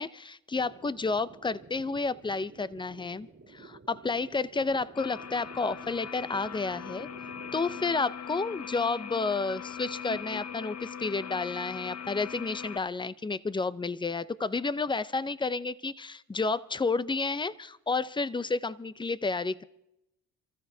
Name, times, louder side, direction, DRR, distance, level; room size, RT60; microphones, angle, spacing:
voice 1, 0.0-7.1 7.5-19.6, left 4 dB, 10° left, 17 dB, 0.5 m, -31 dB
sound 1, 0.5-8.0, right 4 dB, 30° right, 2.0 m, -52 dB
sound 2, 4.9-12.8, left 7 dB, 40° left, 0.8 m, -40 dB
28.0 x 14.0 x 2.7 m, 0.83 s
supercardioid pair, 70°, 41 cm